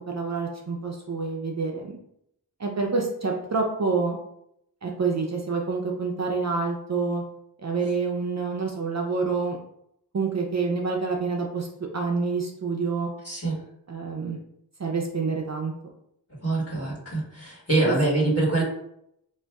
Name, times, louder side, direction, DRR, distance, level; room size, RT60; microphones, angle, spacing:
voice 1, 0.1-2.0 2.6-4.2 4.8-7.2 7.6-9.6 10.1-11.7 11.9-13.1 13.9-14.4 14.8-15.7 17.8-17.9, right 4 dB, 40° right, 1 dB, 0.5 m, -27 dB
voice 2, 13.2-13.6 16.3-18.6, right 2 dB, 35° left, -5 dB, 1.5 m, -24 dB
4.3 x 2.5 x 2.3 m, 0.76 s
wide cardioid pair, 70°, 41 cm